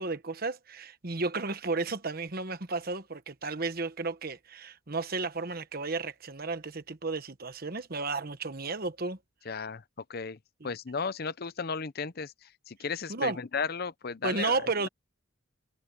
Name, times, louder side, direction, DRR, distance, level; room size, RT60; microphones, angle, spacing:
voice 1, 0.0-9.2 10.6-10.7 13.1-13.4 14.2-14.9, right 3 dB, 45° right, 1.2 m, -33 dB
voice 2, 9.5-9.8 10.1-14.6, left 5 dB, 45° left, 0.6 m, -35 dB
head